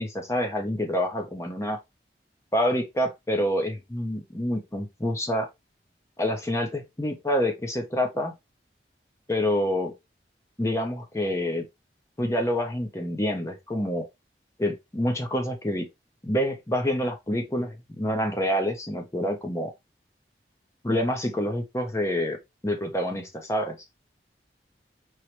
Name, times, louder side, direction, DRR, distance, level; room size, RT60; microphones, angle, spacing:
voice 1, 0.0-1.8 2.5-5.5 6.2-8.3 9.3-9.9 10.6-11.6 12.2-14.1 14.6-15.9 16.2-19.7 20.8-22.4 22.6-23.8, equal, 15° left, 0.7 m, -27 dB
4.6 x 3.0 x 3.0 m
head